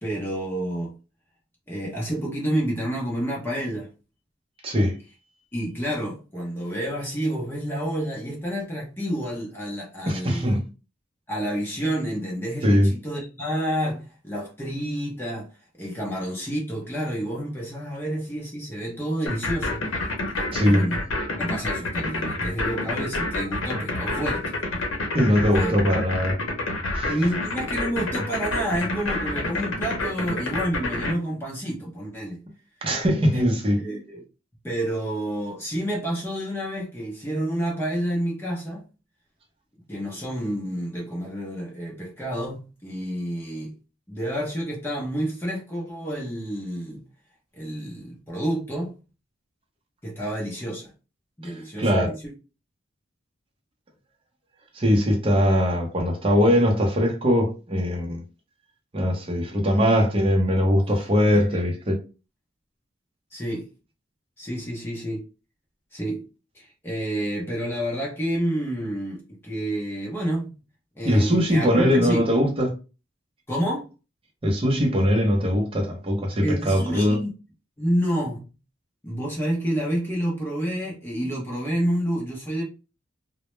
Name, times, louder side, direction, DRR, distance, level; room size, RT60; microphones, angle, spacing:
voice 1, 0.0-0.9 1.7-3.9 5.5-10.5 11.3-15.5 15.8-19.9 20.3-21.0 21.3-24.5 25.5-25.7 27.1-32.4 33.3-33.5 33.8-34.2 34.6-38.8 39.9-43.7 44.1-47.1 47.5-48.9 50.0-50.9 51.4-52.2 61.3-61.5 63.3-63.7 64.4-65.2 65.9-66.2 66.5-70.5 71.0-72.2 73.5-73.8 76.4-77.3 77.8-78.4 79.0-82.6, equal, 10° left, 0.6 m, -29 dB
voice 2, 4.6-4.9 10.1-10.6 12.6-12.9 20.5-20.9 25.1-26.3 26.9-27.1 32.8-33.8 51.8-52.1 54.8-58.2 58.9-62.0 71.0-72.7 74.4-77.2, equal, 30° right, 0.6 m, -21 dB
sound 1, 19.3-31.1, left 2 dB, 85° left, 0.7 m, -28 dB
2.1 x 2.0 x 3.0 m
head